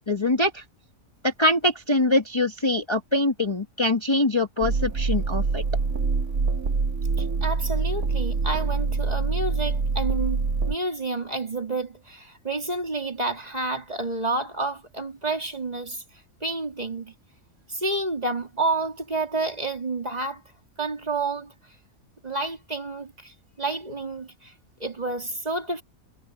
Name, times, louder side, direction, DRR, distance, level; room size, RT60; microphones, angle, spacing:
voice 1, 0.1-0.6 1.2-5.6, left 1 dB, 20° left, 1.3 m, -23 dB
sound 1, 4.6-10.8, right 4 dB, 75° right, 2.4 m, -25 dB
voice 2, 7.2-17.1 17.7-20.4 20.8-21.5 22.2-24.5 24.8-25.8, right 3 dB, 30° right, 2.5 m, -30 dB
omnidirectional pair, 1.5 m